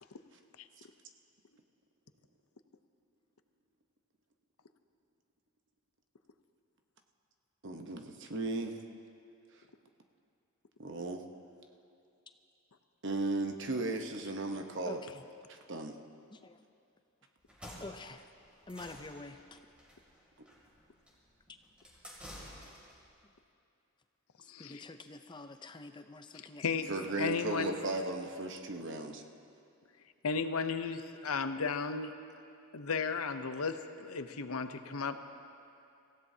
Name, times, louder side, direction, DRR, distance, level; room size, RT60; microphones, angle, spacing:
voice 1, 7.6-8.8 10.8-11.2 13.0-15.0 15.5-16.0 26.9-29.2, right 2 dB, 55° right, 4 dB, 1.0 m, -36 dB
sound 1, 17.4-23.1, equal, 5° right, 2.7 m, -51 dB
voice 2, 17.8-18.2 18.7-19.6 24.6-26.9 27.8-27.9, left 2 dB, 20° left, 8 dB, 0.5 m, -47 dB
voice 3, 24.5-24.8 26.3-26.9 27.2-27.7 30.2-32.1 32.7-35.2, left 5 dB, 80° left, 9 dB, 0.7 m, -34 dB
25.0 x 16.0 x 2.8 m, 2.6 s
head